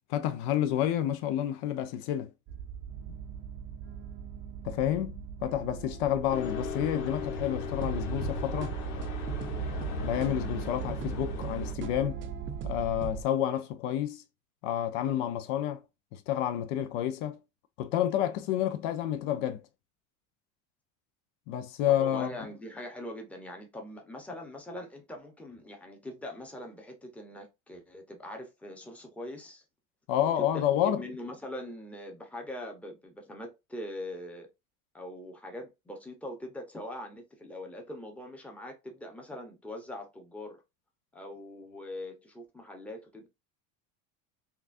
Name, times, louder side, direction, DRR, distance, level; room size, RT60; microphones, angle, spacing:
voice 1, 0.1-2.3 4.6-8.8 10.0-12.2 12.6-14.2 14.6-15.8 16.1-17.4 17.8-19.6 21.5-22.3 30.1-31.0, left 11 dB, 70° left, 0.7 m, -29 dB
sound 1, 2.5-13.2, right 7 dB, 30° right, 0.6 m, -38 dB
sound 2, 6.3-11.7, left 5 dB, 85° left, 1.5 m, -37 dB
voice 2, 21.9-29.6 30.2-30.5 30.9-34.5 34.9-40.6 41.1-43.3, left 1 dB, 5° left, 0.8 m, -42 dB
5.9 x 2.4 x 2.5 m
cardioid pair, 160°, 38 cm